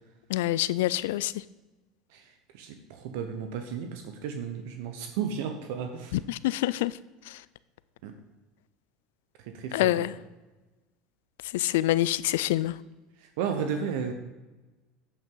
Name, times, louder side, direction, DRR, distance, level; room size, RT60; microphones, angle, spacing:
voice 1, 0.3-1.3 6.1-6.9 9.7-10.1 11.5-12.7, left 15 dB, 80° left, 18 dB, 0.3 m, -26 dB
voice 2, 2.1-6.2 8.0-8.1 9.4-10.2 13.2-14.1, right 7 dB, 75° right, 6 dB, 0.9 m, -34 dB
8.6 x 8.0 x 3.8 m, 1.2 s
supercardioid pair, 100°, 0 cm